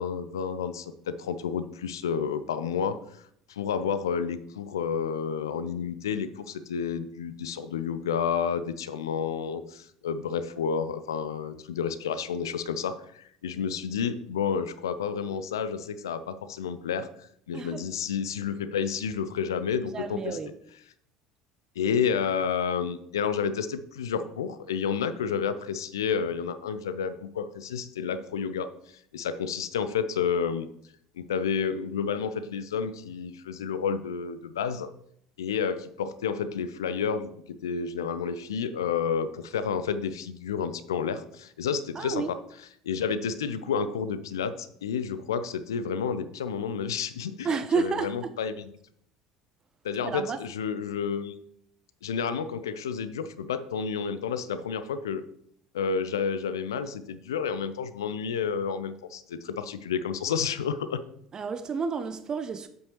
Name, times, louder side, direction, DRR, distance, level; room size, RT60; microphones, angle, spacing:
voice 1, 0.0-3.0 3.5-17.1 17.5-20.4 21.8-28.7 29.1-30.7 31.2-34.9 35.4-42.4 42.8-47.5 47.8-48.7 49.8-51.3 52.0-55.2 55.7-61.0, left 6 dB, 75° left, 0.5 m, -30 dB
voice 2, 17.5-17.9 19.9-20.6 41.9-42.3 47.4-48.4 50.0-50.4 61.3-62.7, right 5 dB, 30° right, 0.5 m, -31 dB
8.2 x 7.9 x 3.1 m
figure-of-eight pair, 65°, 2 cm